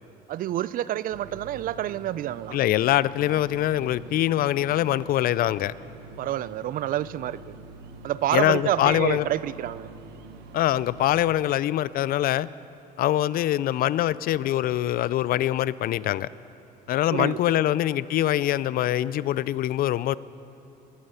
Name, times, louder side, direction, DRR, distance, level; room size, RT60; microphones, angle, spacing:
voice 1, 0.3-2.6 6.2-7.4 8.0-9.9 17.1-17.4, right 12 dB, 55° right, 18 dB, 0.4 m, -28 dB
sound 1, 1.1-11.1, right 4 dB, 80° right, 1.1 m, -45 dB
voice 2, 2.5-5.7 8.3-9.3 10.5-12.5 13.0-16.3 16.9-20.2, left 13 dB, 60° left, 19 dB, 0.4 m, -24 dB
21.0 x 11.5 x 5.6 m, 2.9 s
cardioid pair, 110°, 17 cm